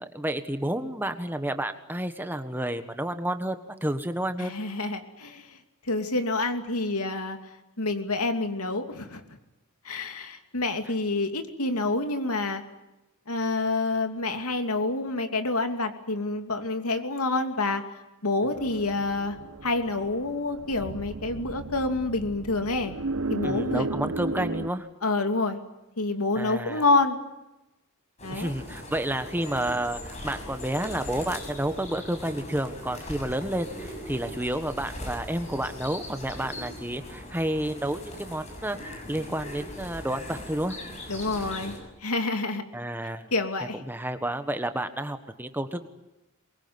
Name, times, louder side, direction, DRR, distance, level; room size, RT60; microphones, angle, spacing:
voice 1, 0.0-4.5 23.4-24.9 26.3-26.9 28.3-40.8 42.7-43.3 43.9-45.9, right 1 dB, 10° right, 9 dB, 1.4 m, -30 dB
voice 2, 4.4-5.6 5.9-7.4 7.8-9.2 9.8-12.6 13.3-17.8 18.2-19.4 19.6-22.9 23.3-23.9 25.0-25.6 26.0-27.2 28.2-28.5 41.1-42.6 43.3-43.8, left 2 dB, 85° left, 6 dB, 2.7 m, -28 dB
sound 1, 18.5-24.7, right 3 dB, 75° right, 0.8 m, -34 dB
sound 2, 28.2-41.8, left 1 dB, 30° left, 7.0 m, -40 dB
23.5 x 22.5 x 9.7 m, 0.96 s
head